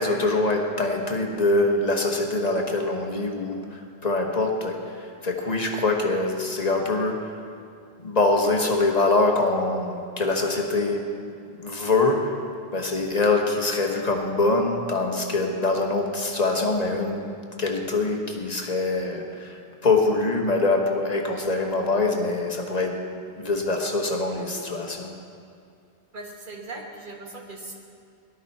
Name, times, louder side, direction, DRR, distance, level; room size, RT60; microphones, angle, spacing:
voice 1, 0.0-7.3 8.0-11.1 11.5-12.4 12.7-17.3 17.6-19.6 19.8-23.0 23.4-25.2, left 2 dB, 40° left, 2 dB, 1.5 m, -24 dB
voice 2, 26.1-27.7, right 2 dB, 55° right, 0 dB, 1.8 m, -39 dB
18.0 x 12.0 x 4.2 m, 2.4 s
omnidirectional pair, 1.0 m